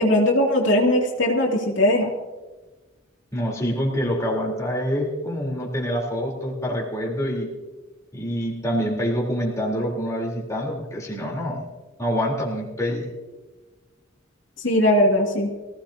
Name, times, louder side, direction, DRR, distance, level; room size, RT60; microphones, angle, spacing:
voice 1, 0.0-2.1 14.6-15.5, left 1 dB, 60° left, -2 dB, 2.9 m, -19 dB
voice 2, 3.3-7.5 8.1-11.7 12.0-13.1, equal, 15° left, -4 dB, 3.8 m, -26 dB
24.5 x 17.0 x 2.9 m, 1.2 s
head